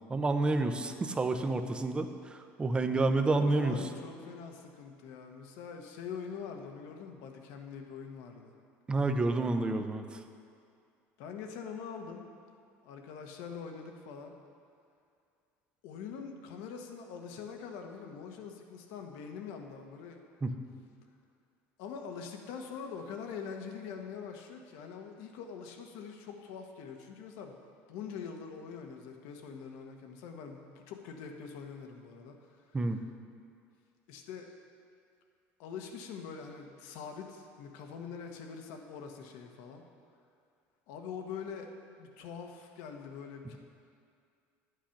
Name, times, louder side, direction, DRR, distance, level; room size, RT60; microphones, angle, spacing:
voice 1, 0.1-3.8 8.9-10.2 20.4-20.5 32.7-33.0, right 2 dB, 15° right, 7 dB, 0.7 m, -29 dB
voice 2, 3.3-8.5 11.2-12.3 12.8-14.3 15.8-20.2 21.8-27.6 27.9-33.1 34.1-34.5 35.6-39.8 40.9-41.7 42.0-43.6, left 6 dB, 80° left, 3 dB, 1.2 m, -44 dB
10.0 x 8.2 x 5.9 m, 2.3 s
cardioid pair, 125°, 5 cm